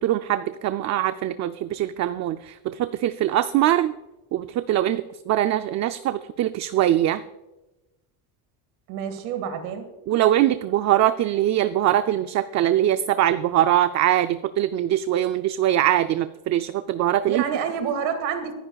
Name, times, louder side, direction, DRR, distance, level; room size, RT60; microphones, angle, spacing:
voice 1, 0.0-3.9 4.3-7.2 10.1-17.4, right 12 dB, 45° right, 11 dB, 0.5 m, -22 dB
voice 2, 8.9-9.9 17.3-18.5, right 7 dB, 85° right, 8 dB, 2.0 m, -28 dB
25.0 x 10.0 x 2.4 m, 1.0 s
cardioid pair, 130°, 38 cm